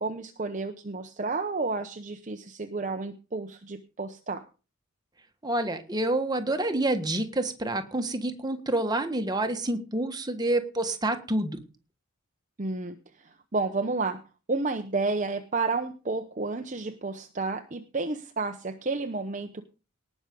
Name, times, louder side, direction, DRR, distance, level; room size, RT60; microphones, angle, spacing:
voice 1, 0.0-4.4 12.6-14.2 14.5-19.6, right 3 dB, 35° right, 6 dB, 0.8 m, -31 dB
voice 2, 5.4-11.6, right 1 dB, 20° right, 7 dB, 1.4 m, -28 dB
18.5 x 6.2 x 5.3 m, 0.33 s
head